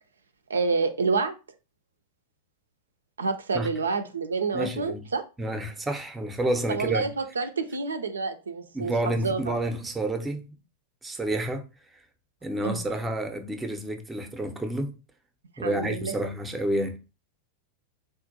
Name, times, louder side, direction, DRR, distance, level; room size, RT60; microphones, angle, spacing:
voice 1, 0.5-1.3 3.2-5.2 6.7-9.4 12.6-12.9 15.6-16.1, right 4 dB, 70° right, 0.3 m, -28 dB
voice 2, 4.5-5.0 5.4-7.0 8.7-10.6 11.0-11.7 12.4-14.9 15.6-17.0, right 1 dB, 10° right, 0.6 m, -29 dB
3.7 x 2.4 x 2.6 m
figure-of-eight pair, 90°, 0 cm